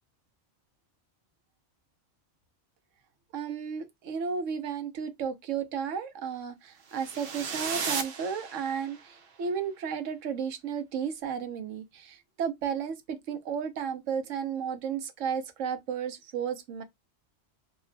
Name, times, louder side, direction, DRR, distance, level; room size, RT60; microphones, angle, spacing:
voice 1, 3.3-16.8, right 7 dB, 85° right, 1.0 m, -33 dB
sound 1, 6.9-9.1, right 5 dB, 55° right, 0.8 m, -35 dB
2.9 x 2.1 x 3.9 m
omnidirectional pair, 1.3 m